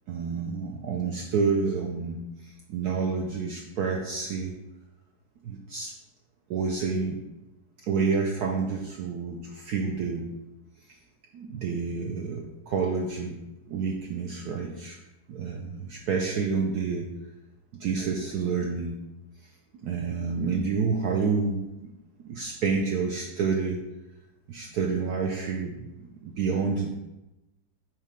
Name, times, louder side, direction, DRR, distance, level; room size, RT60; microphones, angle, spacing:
voice 1, 0.1-4.5 5.4-5.9 6.5-7.2 7.9-10.3 11.3-13.4 13.7-15.0 15.3-17.1 17.8-19.0 19.8-21.7 22.3-23.8 24.5-26.9, right 5 dB, 65° right, 0 dB, 1.1 m, -29 dB
7.4 x 3.2 x 5.1 m, 0.96 s
omnidirectional pair, 2.0 m